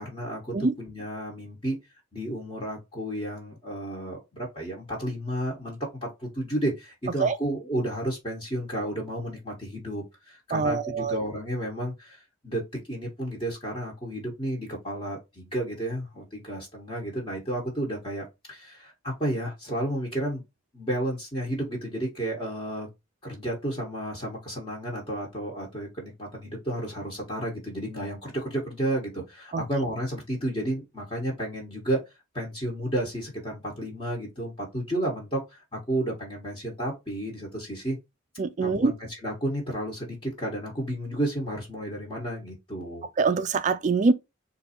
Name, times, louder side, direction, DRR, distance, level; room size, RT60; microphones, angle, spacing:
voice 1, 0.0-1.8 2.1-12.6 12.9-20.4 20.7-22.9 23.2-32.0 32.3-38.0 38.6-43.1, right 1 dB, 25° left, 1.3 m, -32 dB
voice 2, 10.5-11.2 29.5-29.6 38.4-38.9 43.2-44.1, right 4 dB, 35° right, 0.3 m, -24 dB
3.9 x 2.7 x 4.2 m
head